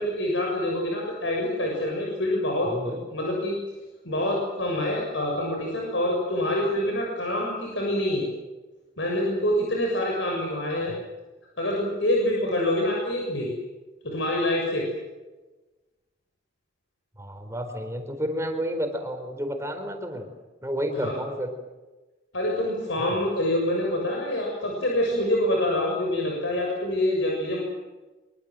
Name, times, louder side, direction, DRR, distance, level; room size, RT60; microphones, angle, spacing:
voice 1, 0.0-3.6 4.0-8.2 9.0-10.9 11.6-13.5 14.0-14.8 21.0-21.1 22.3-27.6, left 1 dB, 80° left, -1 dB, 7.1 m, -26 dB
voice 2, 2.6-3.0 10.9-11.0 17.2-20.3 20.6-21.5 23.0-23.2, equal, 15° right, 5 dB, 4.4 m, -31 dB
25.0 x 24.0 x 7.8 m, 1.2 s
head